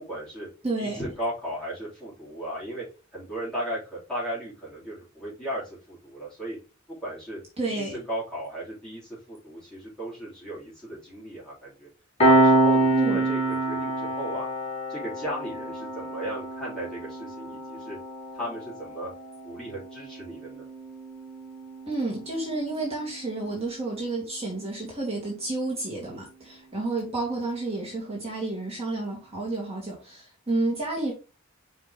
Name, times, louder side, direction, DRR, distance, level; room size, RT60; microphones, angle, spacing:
voice 1, 0.0-0.5 0.8-2.8 3.1-6.6 7.0-7.4 7.7-7.8 8.1-11.9 12.2-13.4 13.6-14.5 14.9-18.0 18.3-19.1 19.4-20.6, right 1 dB, 5° left, 3.3 m, -36 dB
voice 2, 0.6-1.1 7.6-8.0 12.9-13.3 21.9-31.1, right 2 dB, 30° right, 2.2 m, -30 dB
Piano, 12.2-23.3, right 2 dB, 30° left, 2.9 m, -27 dB
5.8 x 5.1 x 3.5 m
head